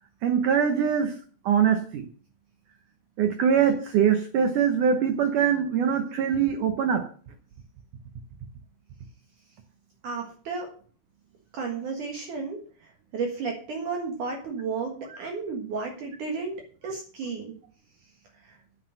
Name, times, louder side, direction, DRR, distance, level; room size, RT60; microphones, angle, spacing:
voice 1, 0.2-1.1 1.5-2.1 3.2-7.0 16.9-17.0, right 7 dB, 75° right, 6 dB, 1.9 m, -23 dB
voice 2, 10.0-10.7 11.5-12.6 13.1-17.5, right 4 dB, 55° right, 2 dB, 2.8 m, -32 dB
8.9 x 8.6 x 6.4 m, 0.42 s
omnidirectional pair, 4.8 m